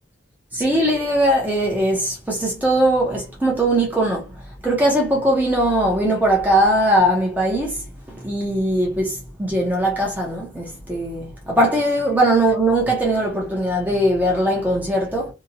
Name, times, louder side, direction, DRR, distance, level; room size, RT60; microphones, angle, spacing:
voice 1, 0.5-4.3 4.6-15.3, right 1 dB, 10° right, 0.6 m, -20 dB
2.7 x 2.1 x 2.6 m
head